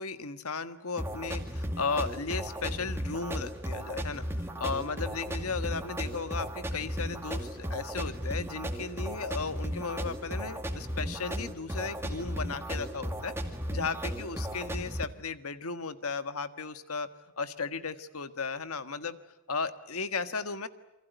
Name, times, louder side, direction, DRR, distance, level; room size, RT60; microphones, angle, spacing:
voice 1, 0.0-13.3 13.7-19.2 19.5-20.7, left 4 dB, 85° left, 11 dB, 1.6 m, -35 dB
sound 1, 1.0-15.0, equal, 10° right, 2.3 m, -35 dB
28.5 x 24.0 x 8.1 m, 0.94 s
head